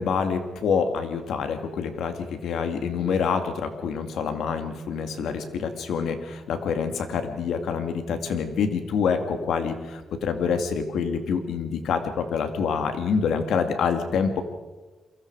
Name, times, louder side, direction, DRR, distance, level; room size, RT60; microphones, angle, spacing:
voice 1, 0.0-14.4, left 6 dB, 85° left, 7 dB, 2.5 m, -26 dB
29.5 x 23.0 x 4.9 m, 1.2 s
wide cardioid pair, 150°, 0 cm